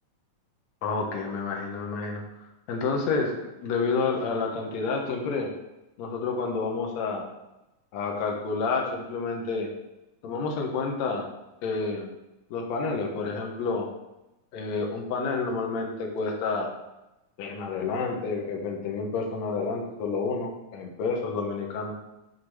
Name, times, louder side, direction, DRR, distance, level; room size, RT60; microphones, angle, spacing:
voice 1, 0.8-2.2 2.7-3.3 3.6-5.5 6.0-7.2 7.9-9.7 10.2-11.2 11.6-12.1 12.5-13.9 14.5-16.7 17.4-21.9, left 4 dB, 65° left, 1 dB, 2.4 m, -29 dB
10.0 x 4.6 x 4.9 m, 0.95 s
omnidirectional pair, 3.7 m